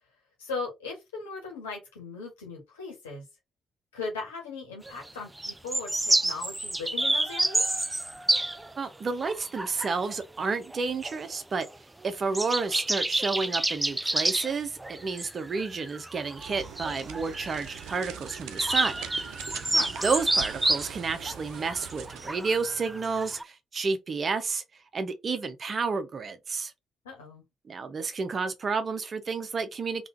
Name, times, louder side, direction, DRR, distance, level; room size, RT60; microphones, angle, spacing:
voice 1, 0.4-3.2 3.9-7.8 19.7-19.9 27.0-27.4, left 4 dB, 85° left, 1.6 m, -38 dB
sound 1, 4.9-5.1 5.4-8.8 9.2-10.2 10.7-11.2 11.6-11.7 12.0-12.1 12.3-23.4, right 1 dB, 15° right, 0.5 m, -29 dB
voice 2, 8.8-11.7 12.0-19.5 20.0-24.6 24.9-26.7 27.7-30.1, right 4 dB, 45° right, 0.9 m, -31 dB
sound 2, 16.3-22.4, right 9 dB, 70° right, 0.4 m, -43 dB
3.6 x 3.1 x 2.7 m
figure-of-eight pair, 40°, 0 cm